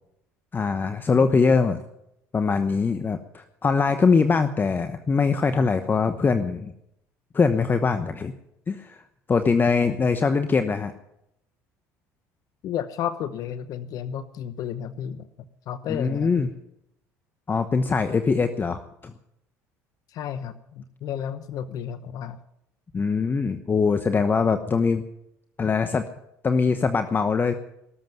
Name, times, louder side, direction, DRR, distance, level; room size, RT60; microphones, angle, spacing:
voice 1, 0.5-1.8 2.3-6.7 7.3-8.3 8.7-9.0 9.3-10.9 15.9-16.5 17.5-19.1 22.9-25.0 25.6-26.0 26.4-27.5, left 5 dB, 30° left, 9 dB, 1.0 m, -22 dB
voice 2, 12.6-15.3 15.7-16.5 20.1-22.4, left 9 dB, 60° left, 13 dB, 0.9 m, -32 dB
18.5 x 7.8 x 9.2 m, 0.82 s
supercardioid pair, 80°, 7 cm